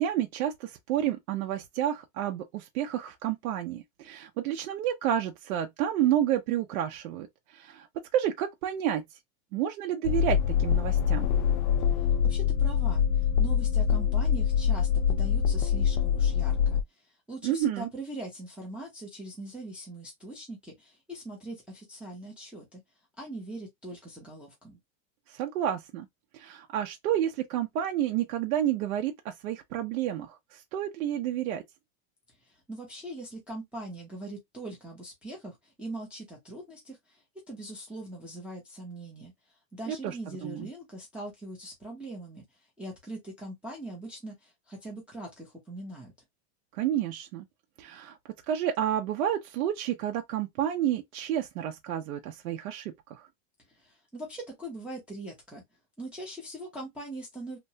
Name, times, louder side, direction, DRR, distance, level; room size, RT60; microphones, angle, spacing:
voice 1, 0.0-7.3 7.5-7.9 8.1-9.0 9.5-11.3 17.4-17.9 25.3-26.1 26.3-31.6 40.0-40.1 40.4-40.7 46.7-47.4 47.8-48.2 48.5-53.2, right 11 dB, 75° right, 0.7 m, -30 dB
sound 1, 10.0-16.8, left 7 dB, 75° left, 0.6 m, -25 dB
voice 2, 11.9-22.8 23.2-24.8 32.4-37.2 37.5-39.3 39.7-42.4 42.8-46.1 53.7-55.6 56.0-57.6, right 1 dB, 5° right, 0.5 m, -41 dB
2.9 x 2.2 x 2.7 m
supercardioid pair, 160°, 43 cm